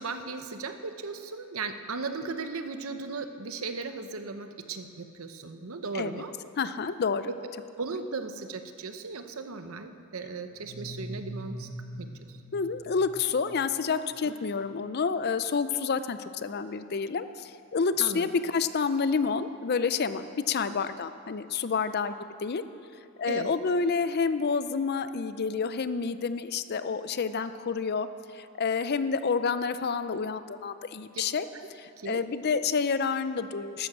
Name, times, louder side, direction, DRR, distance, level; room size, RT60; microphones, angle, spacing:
voice 1, 0.0-6.3 7.3-7.4 7.8-11.7 12.0-12.4 18.0-18.3 23.3-23.6 31.6-31.7 32.0-32.2, right 4 dB, 75° right, 8 dB, 0.9 m, -36 dB
voice 2, 6.6-7.3 12.5-22.1 22.4-22.6 23.2-28.1 28.3-31.5 31.7-33.9, left 5 dB, 50° left, 12 dB, 0.5 m, -29 dB
sound 1, 10.5-14.2, equal, 40° right, 2.7 m, -42 dB
12.0 x 9.9 x 7.2 m, 2.5 s
head